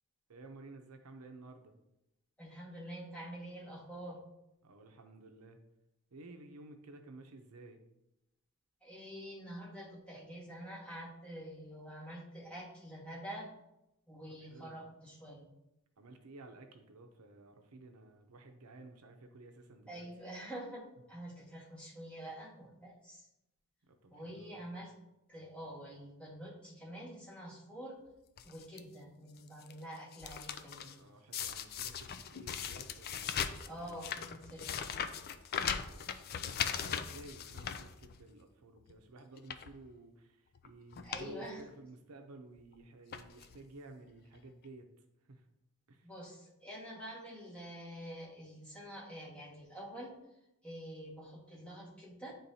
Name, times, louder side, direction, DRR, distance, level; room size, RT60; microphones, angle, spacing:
voice 1, 0.3-1.7 4.6-5.6 6.1-7.8 14.3-14.8 16.0-20.1 23.8-24.8 30.9-34.6 35.7-44.9 45.2-45.5 45.9-46.1, right 2 dB, 75° right, 5 dB, 0.7 m, -54 dB
voice 2, 2.4-4.2 8.8-13.5 14.1-15.5 19.9-23.3 24.1-24.9 25.3-28.0 28.4-31.0 33.6-34.9 41.0-41.6 46.0-50.1 50.6-52.3, equal, 5° left, -5 dB, 1.6 m, -47 dB
sound 1, 28.4-28.8 29.4-29.7 30.0-30.9 31.3-38.4 38.8-38.9 39.4-39.7 40.6-40.7 40.9-41.3 41.6-41.7 42.6-42.7 43.1-43.6 44.4-44.5 44.6-44.7, left 7 dB, 45° left, 0.4 m, -39 dB
9.8 x 3.8 x 2.7 m, 0.87 s
head